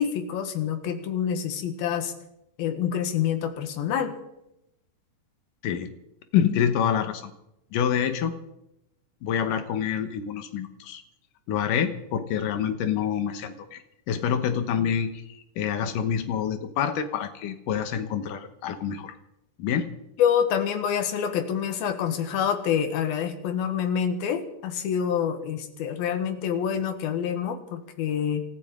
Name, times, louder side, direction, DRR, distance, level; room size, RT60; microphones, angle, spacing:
voice 1, 0.0-2.1 2.6-4.2 20.2-28.4, left 8 dB, 90° left, 7 dB, 3.3 m, -27 dB
voice 2, 6.3-7.3 7.7-8.3 9.2-11.0 11.5-13.8 14.1-15.1 15.6-19.1 19.6-19.9, left 8 dB, 70° left, 9 dB, 2.6 m, -26 dB
27.0 x 14.0 x 3.8 m, 0.83 s
omnidirectional pair, 4.2 m